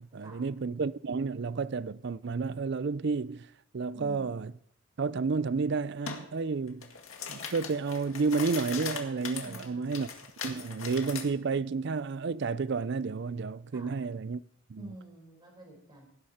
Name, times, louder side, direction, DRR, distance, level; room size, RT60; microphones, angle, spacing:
voice 1, 0.0-4.5 5.0-6.9 7.3-10.1 10.4-14.4 14.7-15.0, right 4 dB, 55° right, 0.4 m, -31 dB
voice 2, 3.9-4.3 9.4-10.0 13.7-14.0 14.8-16.1, equal, 20° right, 4.3 m, -49 dB
sound 1, 6.1-6.2 6.7-11.3, left 6 dB, 75° left, 2.0 m, -39 dB
17.5 x 10.0 x 4.3 m
head